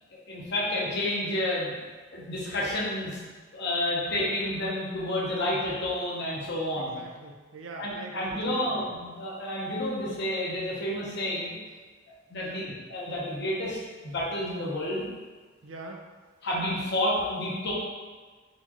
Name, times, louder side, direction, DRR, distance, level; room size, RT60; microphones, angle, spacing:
voice 1, 0.3-3.2 3.5-7.0 7.8-11.6 12.3-15.1 16.4-17.7, left 1 dB, 60° left, -5 dB, 0.9 m, -30 dB
voice 2, 6.8-8.9 12.4-12.7 15.6-16.0, right 3 dB, 80° right, 1 dB, 0.5 m, -43 dB
4.3 x 2.4 x 2.9 m, 1.4 s
head